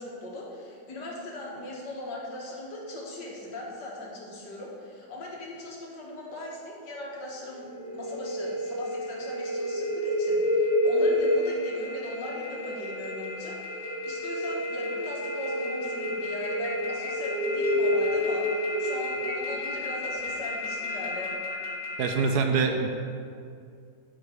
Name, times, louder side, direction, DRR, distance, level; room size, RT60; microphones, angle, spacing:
voice 1, 0.0-7.7 7.9-21.3, left 1 dB, 70° left, -3 dB, 2.0 m, -39 dB
sound 1, 7.3-22.1, left 1 dB, 30° left, 2.0 m, -29 dB
sound 2, 16.4-17.3 17.6-18.4 18.7-18.8 19.3-21.7, left 1 dB, 15° left, 0.8 m, -47 dB
voice 2, 22.0-22.9, right 5 dB, 70° right, 5 dB, 1.1 m, -24 dB
11.5 x 4.0 x 4.8 m, 2.3 s
omnidirectional pair, 1.9 m